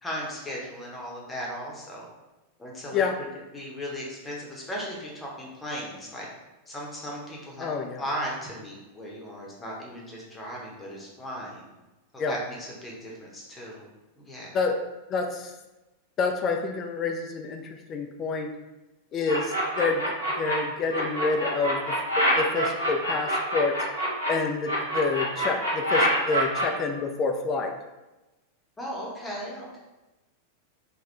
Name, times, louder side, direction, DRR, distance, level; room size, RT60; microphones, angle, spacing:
voice 1, 0.0-2.1 2.6-3.0 3.5-6.3 6.7-7.7 8.0-11.6 12.1-13.9 14.2-14.6 28.8-29.9, equal, 10° left, -4 dB, 0.9 m, -37 dB
voice 2, 7.6-8.0 12.2-12.3 14.5-14.8 15.1-15.5 16.2-18.5 19.1-20.0 20.4-21.8 22.2-23.8 24.3-27.7, left 4 dB, 30° left, 4 dB, 0.3 m, -28 dB
sound 1, 19.3-20.5 20.9-24.3 24.6-26.6, equal, 85° right, 1.1 m, -26 dB
3.5 x 2.2 x 3.3 m, 1.1 s
figure-of-eight pair, 90°, 0 cm